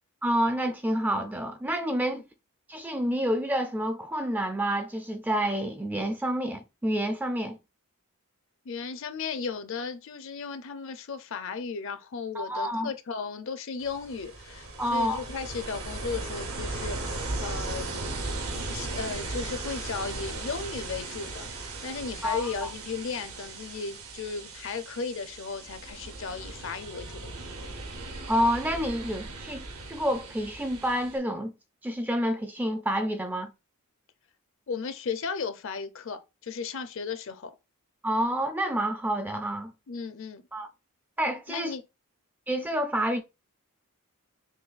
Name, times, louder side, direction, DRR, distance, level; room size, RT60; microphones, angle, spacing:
voice 1, 0.2-2.2 2.7-7.6 12.4-12.9 14.8-15.2 22.2-22.5 28.3-31.5 31.8-33.5 38.0-39.7 40.5-40.7 41.2-41.7 42.5-43.2, equal, 10° right, 0.3 m, -28 dB
voice 2, 8.6-18.1 18.7-27.2 27.6-27.7 34.7-37.5 39.9-40.4 41.5-41.8, left 5 dB, 60° left, 0.5 m, -35 dB
Ocean, 13.8-31.2, right 2 dB, 70° right, 0.8 m, -37 dB
6.1 x 2.2 x 2.4 m
head